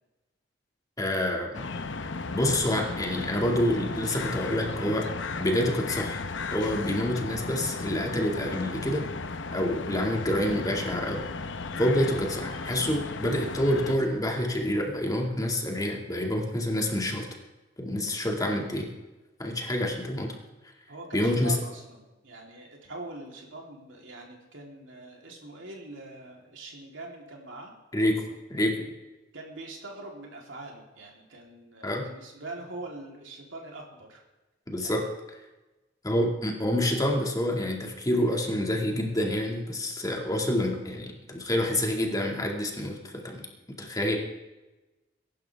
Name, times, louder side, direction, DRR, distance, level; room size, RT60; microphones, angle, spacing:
voice 1, 1.0-1.6 2.3-5.1 5.4-6.2 6.5-9.1 9.5-11.3 11.8-17.3 17.8-18.9 19.4-20.3 21.1-21.6 27.9-28.2 28.5-28.7 31.8-32.1 34.7-35.1 36.0-43.4 43.8-44.2, left 1 dB, 20° left, 1 dB, 2.2 m, -27 dB
sound 1, 1.5-14.0, left 4 dB, 70° left, 0.9 m, -35 dB
voice 2, 20.9-27.7 28.8-28.9 29.3-34.2 34.8-35.1, right 2 dB, 85° right, -1 dB, 3.5 m, -43 dB
21.5 x 11.5 x 3.5 m, 1.1 s
head